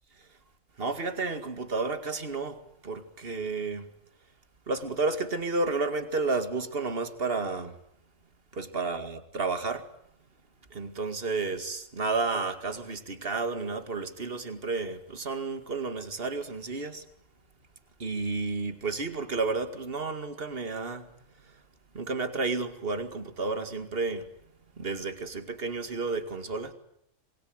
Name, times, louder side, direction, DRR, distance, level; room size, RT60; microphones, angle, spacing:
voice 1, 0.8-3.9 4.7-7.8 8.5-9.9 10.7-17.0 18.0-21.1 21.4-21.6 21.9-24.3 24.8-26.7, right 3 dB, 45° right, 2.4 m, -31 dB
27.0 x 22.0 x 8.0 m
omnidirectional pair, 1.3 m